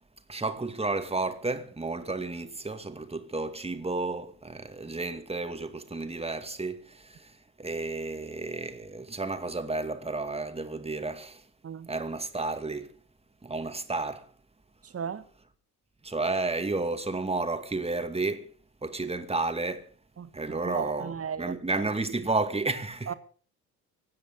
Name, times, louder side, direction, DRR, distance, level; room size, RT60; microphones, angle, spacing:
voice 1, 0.3-11.4 11.9-12.9 13.4-14.3 16.0-18.5 18.8-19.9 20.3-23.1, right 3 dB, 15° right, 2.4 m, -32 dB
voice 2, 14.8-15.3 20.2-21.6 23.1-23.2, right 7 dB, 30° right, 1.6 m, -36 dB
25.0 x 9.5 x 5.4 m
figure-of-eight pair, 55°, 44 cm